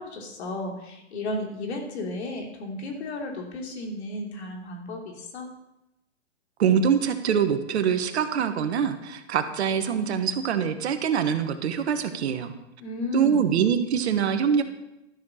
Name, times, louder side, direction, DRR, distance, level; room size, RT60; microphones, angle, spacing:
voice 1, 0.0-5.5 12.8-13.5, left 2 dB, 60° left, 2 dB, 3.0 m, -33 dB
voice 2, 6.6-12.5 13.1-14.6, right 7 dB, 60° right, 9 dB, 1.4 m, -24 dB
13.0 x 6.8 x 5.7 m, 0.91 s
hypercardioid pair, 130°, 36 cm